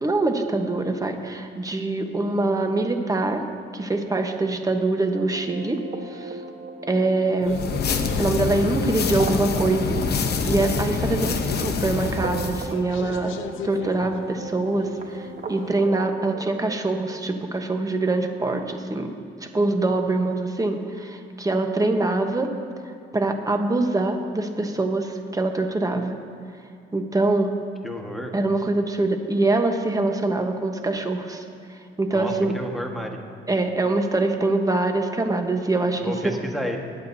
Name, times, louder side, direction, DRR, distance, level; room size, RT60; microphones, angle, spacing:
voice 1, 0.0-3.4 3.7-5.8 6.1-6.4 6.9-7.6 8.2-13.4 13.6-19.1 19.5-22.5 23.1-26.2 26.9-27.5 28.3-31.4 32.0-32.5 33.5-36.3, right 2 dB, 15° right, 5 dB, 1.1 m, -24 dB
sound 1, 5.0-17.2, right 3 dB, 45° right, 1.2 m, -38 dB
sound 2, 7.2-15.9, left 9 dB, 80° left, 0.6 m, -39 dB
sound 3, 7.4-12.7, left 5 dB, 55° left, 0.9 m, -26 dB
voice 2, 27.8-28.3 32.1-33.2 36.0-36.8, left 1 dB, ahead, 1 dB, 1.5 m, -31 dB
20.0 x 8.8 x 2.7 m, 2.6 s
cardioid pair, 90°, 20 cm